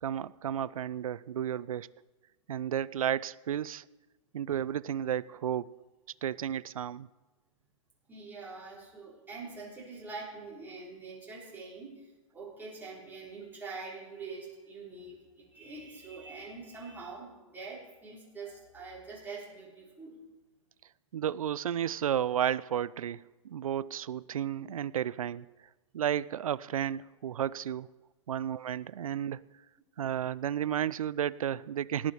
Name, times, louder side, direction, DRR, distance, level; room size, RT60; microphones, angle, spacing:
voice 1, 0.0-1.9 2.5-3.8 4.3-5.8 6.2-7.1 21.1-25.5 25.9-27.9 28.3-29.4 30.0-32.1, right 10 dB, 90° right, 20 dB, 0.4 m, -32 dB
voice 2, 8.1-20.2, right 4 dB, 10° right, -5 dB, 3.9 m, -44 dB
18.5 x 8.6 x 4.5 m, 1.1 s
hypercardioid pair, 135°, 17 cm